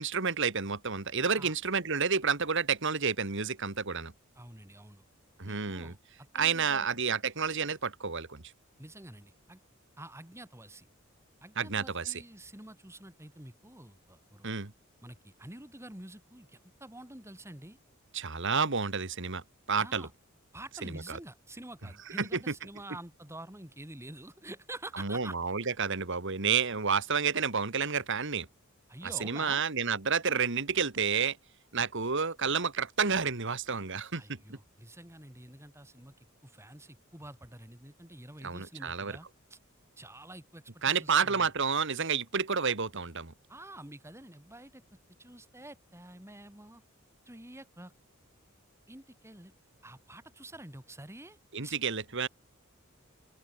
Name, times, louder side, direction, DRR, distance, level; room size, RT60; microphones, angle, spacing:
voice 1, 0.0-4.1 5.4-5.9 6.3-8.4 11.6-12.2 14.4-14.7 18.1-19.4 19.7-20.1 20.8-21.2 22.2-22.4 25.0-28.5 29.2-31.4 31.7-34.6 38.4-39.2 40.8-43.3 51.5-52.3, right 6 dB, 60° right, 2.0 m, -30 dB
voice 2, 4.3-5.0 5.4-6.9 8.8-9.6 10.0-10.9 11.4-14.5 15.0-17.8 19.8-20.1 20.5-25.4 28.9-29.6 34.1-39.6 40.0-41.5 43.5-46.8 47.3-47.9 48.9-49.5 49.8-51.4 51.6-51.8, right 1 dB, 15° right, 3.2 m, -48 dB
head